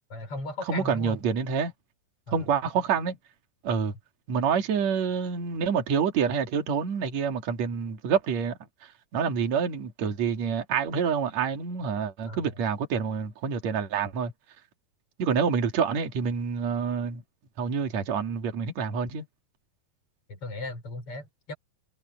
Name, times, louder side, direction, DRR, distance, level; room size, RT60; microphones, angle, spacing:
voice 1, 0.1-1.2 2.3-2.4 12.3-12.6 20.3-21.5, left 2 dB, 40° left, 6.5 m, -37 dB
voice 2, 0.7-1.7 2.3-3.2 3.6-3.9 4.3-14.3 15.2-17.2 17.6-19.2, right 6 dB, 50° right, 3.4 m, -27 dB
omnidirectional pair, 4.1 m